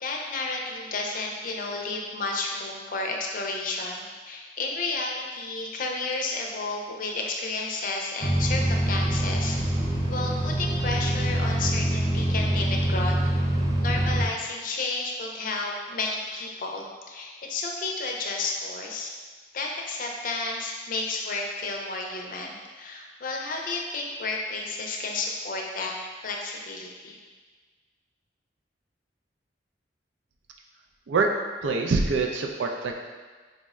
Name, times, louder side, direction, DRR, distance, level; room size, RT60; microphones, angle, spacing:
voice 1, 0.0-9.6 10.1-13.1 13.8-19.1 19.5-25.9 26.2-27.2, left 3 dB, 50° left, 0 dB, 0.5 m, -32 dB
sound 1, 8.2-14.2, right 1 dB, 20° right, 0.4 m, -25 dB
voice 2, 31.6-32.9, right 4 dB, 90° right, 2 dB, 0.4 m, -24 dB
4.0 x 2.1 x 3.5 m, 1.4 s
head